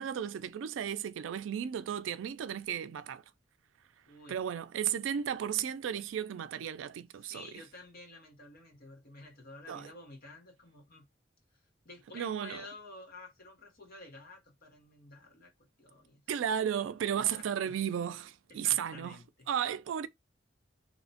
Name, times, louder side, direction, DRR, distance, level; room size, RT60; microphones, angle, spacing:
voice 1, 0.0-3.2 4.3-7.6 9.7-9.9 12.1-12.6 16.3-19.2 19.5-20.1, right 9 dB, 85° right, 0.3 m, -34 dB
voice 2, 4.1-4.4 7.2-11.1 11.8-16.3 17.2-17.8 18.5-19.5, left 2 dB, 50° left, 1.0 m, -51 dB
2.7 x 2.1 x 2.7 m
head